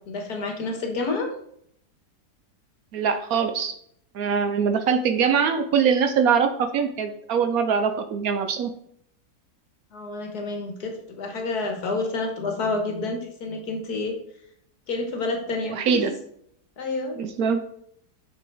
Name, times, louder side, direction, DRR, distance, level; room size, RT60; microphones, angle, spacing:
voice 1, 0.1-1.3 4.5-4.6 9.9-14.1 14.9-16.1 16.8-17.2, left 3 dB, 65° left, 3 dB, 2.0 m, -29 dB
voice 2, 2.9-3.7 4.1-8.7 15.7-16.1 17.2-17.6, right 6 dB, 65° right, 8 dB, 1.1 m, -23 dB
6.3 x 6.2 x 4.6 m, 0.69 s
omnidirectional pair, 1.8 m